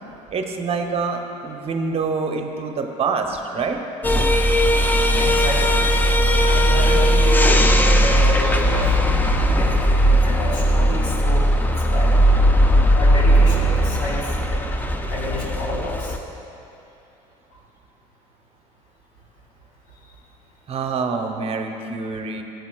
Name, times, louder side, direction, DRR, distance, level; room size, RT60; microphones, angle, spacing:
voice 1, 0.3-3.8 20.7-22.4, right 4 dB, 40° right, 4 dB, 0.8 m, -26 dB
sound 1, 4.0-16.2, equal, 10° left, 0.5 m, -17 dB
voice 2, 5.2-5.8 6.5-8.9 9.5-12.2 12.9-14.4 15.1-16.2, left 1 dB, 80° left, -3 dB, 2.1 m, -30 dB
14.0 x 8.0 x 2.3 m, 2.8 s
supercardioid pair, 90°, 16 cm